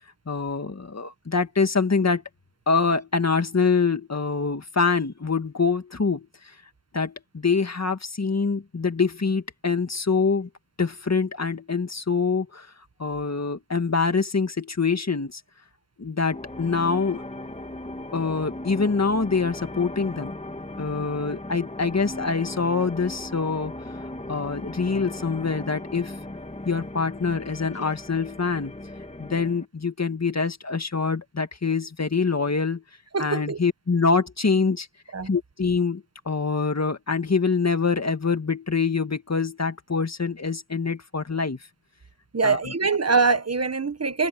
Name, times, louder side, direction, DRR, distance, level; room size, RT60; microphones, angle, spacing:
voice 1, 0.3-2.2 2.7-6.3 6.9-10.5 10.8-12.7 13.0-15.4 16.0-17.2 18.1-20.3 20.8-23.7 24.3-26.1 26.7-28.7 29.2-32.8 33.2-34.9 35.2-41.6 42.4-42.7, left 4 dB, 55° left, 1.9 m, -25 dB
sound 1, 16.3-29.6, left 1 dB, 20° left, 2.1 m, -37 dB
voice 2, 33.1-33.6 35.1-35.3 42.3-44.3, right 4 dB, 50° right, 1.4 m, -23 dB
wide cardioid pair, 60°, 32 cm